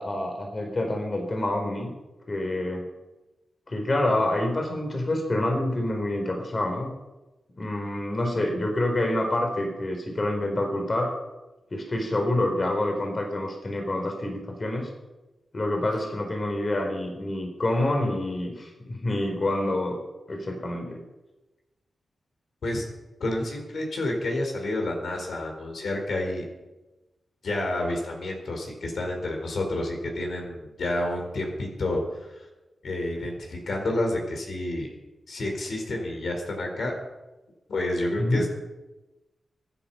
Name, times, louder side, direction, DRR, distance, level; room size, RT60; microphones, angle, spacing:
voice 1, 0.0-1.9 2.3-2.9 3.7-6.9 7.6-11.2 11.7-14.9 15.5-20.0 20.3-21.0 38.2-38.4, left 1 dB, 40° left, 3 dB, 3.9 m, -27 dB
voice 2, 23.2-26.4 27.4-32.0 32.8-34.9 35.3-36.9 37.7-38.5, left 1 dB, 75° left, 2 dB, 4.5 m, -29 dB
24.5 x 10.0 x 5.7 m, 1.1 s
cardioid pair, 80°, 0 cm